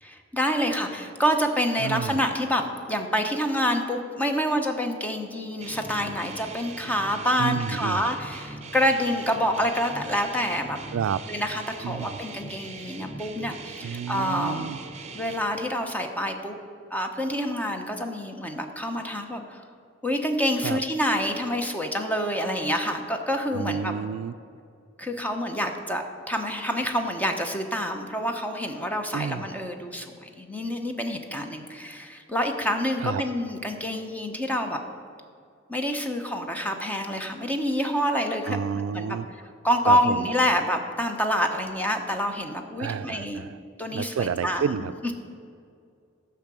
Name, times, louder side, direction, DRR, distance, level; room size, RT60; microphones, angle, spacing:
voice 1, 0.0-10.8 11.3-14.7 15.1-16.6 16.9-19.6 20.0-23.9 25.0-34.8 35.7-38.6 38.9-39.2 39.6-43.4 43.8-45.1, equal, 10° left, 4 dB, 0.9 m, -27 dB
voice 2, 1.8-2.2 7.4-8.0 10.9-11.2 11.8-12.1 13.8-14.8 20.6-20.8 23.5-24.3 29.1-29.5 33.0-33.2 38.4-39.2 39.9-40.3 42.8-43.5 43.9-44.9, right 7 dB, 80° right, 15 dB, 0.3 m, -30 dB
sound 1, 5.6-15.4, right 3 dB, 35° right, 0.8 m, -41 dB
12.0 x 5.8 x 7.5 m, 2.3 s
head